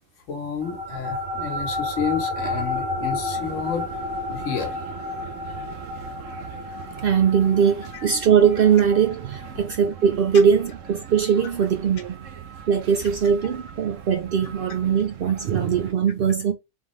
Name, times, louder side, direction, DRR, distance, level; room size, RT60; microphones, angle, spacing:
voice 1, 0.3-3.9 4.3-4.7 7.9-8.0, left 7 dB, 70° left, 1.3 m, -30 dB
sound 1, 0.6-11.4, left 2 dB, 45° right, 1.0 m, -32 dB
sound 2, 3.3-15.9, right 9 dB, 80° right, 1.1 m, -41 dB
voice 2, 7.0-12.2 12.7-16.5, right 7 dB, 65° right, 0.6 m, -20 dB
3.6 x 3.5 x 3.0 m
omnidirectional pair, 1.3 m